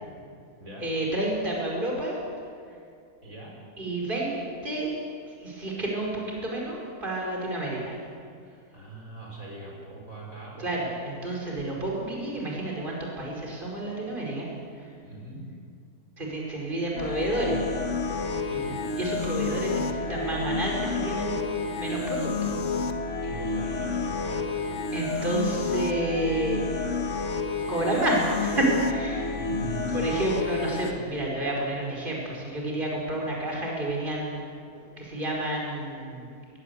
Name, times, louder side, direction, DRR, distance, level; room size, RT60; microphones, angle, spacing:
voice 1, 0.8-2.2 3.8-4.3 4.6-4.9 5.3-8.0 10.6-14.5 14.8-14.9 16.2-17.6 18.3-18.5 19.0-21.4 21.8-22.6 24.9-26.6 27.7-29.3 29.9-34.4 34.7-36.3, right 1 dB, 30° right, -2 dB, 5.3 m, -30 dB
voice 2, 3.2-3.5 8.7-10.7 15.0-15.5 18.4-18.8 23.2-24.6 29.4-29.9, right 1 dB, 60° right, -2 dB, 5.2 m, -40 dB
sound 1, 17.0-30.9, left 4 dB, 50° left, 1.7 m, -30 dB
21.5 x 21.5 x 8.3 m, 2.3 s
omnidirectional pair, 1.6 m